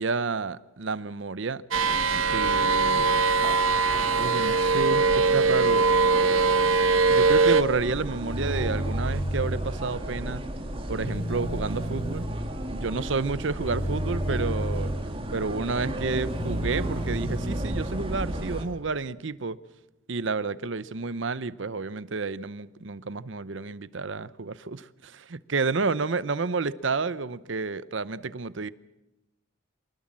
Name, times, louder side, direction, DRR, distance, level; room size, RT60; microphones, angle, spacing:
voice 1, 0.0-1.6 2.1-3.2 4.1-5.8 7.1-10.4 10.9-12.3 12.7-14.9 15.3-19.6 20.1-28.7, right 4 dB, 65° right, 0.8 m, -30 dB
sound 1, 1.7-18.6, right 1 dB, 30° right, 2.6 m, -35 dB
sound 2, 1.7-7.6, right 4 dB, 85° right, 1.1 m, -21 dB
sound 3, 8.3-9.6 10.9-12.2 13.6-14.9 16.2-17.6, right 1 dB, 70° left, 5.8 m, -31 dB
25.0 x 19.5 x 7.5 m
head